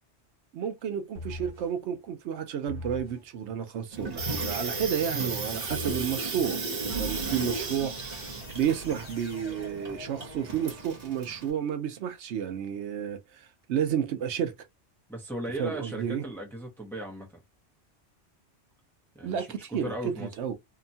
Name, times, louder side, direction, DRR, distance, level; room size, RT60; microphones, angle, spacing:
voice 1, 0.5-8.2 8.5-14.6 15.6-16.2 19.2-20.5, right 8 dB, 70° right, 0.8 m, -31 dB
sound 1, 1.1-1.7 2.7-3.2 4.2-4.7 5.7-6.2 6.9-11.3, left 1 dB, 45° left, 1.3 m, -42 dB
Water tap faucet / Sink (filling or washing), 3.9-11.5, right 3 dB, 40° right, 0.7 m, -35 dB
voice 2, 15.1-17.3 19.1-20.3, right 1 dB, ahead, 0.6 m, -37 dB
2.8 x 2.2 x 2.6 m
omnidirectional pair, 1.2 m